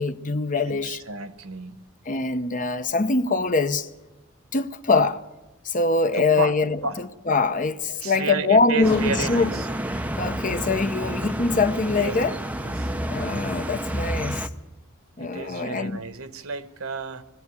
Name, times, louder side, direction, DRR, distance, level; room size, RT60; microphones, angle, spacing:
voice 1, 0.0-1.0 2.1-3.9 4.5-5.2 5.6-9.5 10.2-12.3 13.1-14.4 15.2-16.0, left 3 dB, 40° left, 0.8 m, -23 dB
voice 2, 0.5-1.8 6.1-6.5 6.8-7.0 7.9-9.7 12.0-12.2 12.6-12.9 15.2-17.2, right 4 dB, 85° right, 1.2 m, -32 dB
sound 1, 8.8-14.5, right 1 dB, 5° right, 0.7 m, -29 dB
21.0 x 14.5 x 9.5 m
head